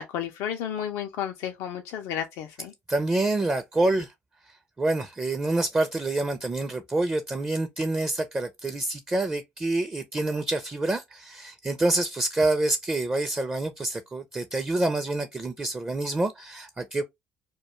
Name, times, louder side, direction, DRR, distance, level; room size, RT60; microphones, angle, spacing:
voice 1, 0.0-2.7, left 9 dB, 70° left, 0.4 m, -32 dB
voice 2, 2.9-4.1 4.5-17.0, right 2 dB, 20° right, 0.5 m, -27 dB
2.2 x 2.2 x 3.0 m
hypercardioid pair, 60°, 6 cm